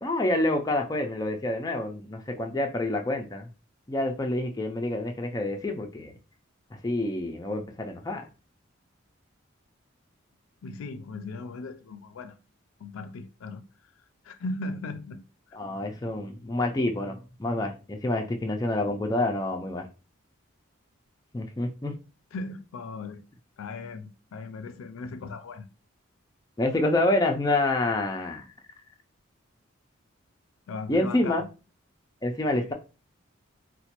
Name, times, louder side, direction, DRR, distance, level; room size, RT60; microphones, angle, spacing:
voice 1, 0.0-3.5 3.9-6.1 6.8-8.3 15.5-19.9 21.3-21.9 26.6-28.4 30.9-31.4 32.2-32.7, left 2 dB, 15° left, 0.3 m, -27 dB
voice 2, 10.6-12.3 12.8-13.6 14.2-15.6 22.3-23.2 23.6-25.7 30.7-31.5 32.5-32.7, left 3 dB, 85° left, 0.4 m, -38 dB
4.0 x 2.1 x 2.9 m
head